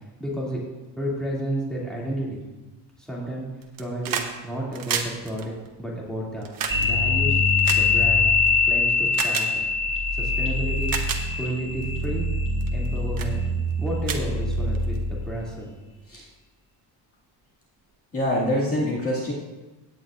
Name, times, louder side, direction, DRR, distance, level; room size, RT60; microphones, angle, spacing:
voice 1, 0.2-0.6 1.0-2.4 3.0-3.5 3.8-6.5 6.8-8.3 8.6-9.6 10.1-10.9 11.4-12.3 12.7-13.4 13.8-15.7, right 1 dB, ahead, -6 dB, 2.5 m, -31 dB
sound 1, 3.6-4.3 4.6-8.5 9.1-9.5 10.3-10.4 10.8-11.2 11.8-12.0 12.6-12.9 13.2-13.3 13.7-13.8 14.0-15.0 16.1-16.2, right 7 dB, 50° right, 1.1 m, -31 dB
sound 2, 6.7-15.3, left 3 dB, 30° right, 3.2 m, -23 dB
voice 2, 18.1-19.3, left 1 dB, 30° left, -6 dB, 2.2 m, -24 dB
17.0 x 9.3 x 2.5 m, 1.1 s
cardioid pair, 150°, 44 cm